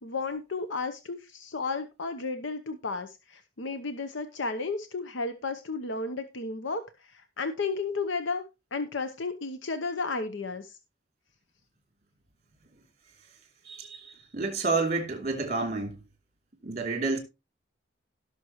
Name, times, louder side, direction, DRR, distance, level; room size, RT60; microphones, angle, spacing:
voice 1, 0.0-8.4 8.7-10.8, left 4 dB, 70° left, 0.8 m, -33 dB
voice 2, 13.6-16.0 16.6-17.2, right 3 dB, 35° right, 2.9 m, -29 dB
17.5 x 6.1 x 3.0 m
head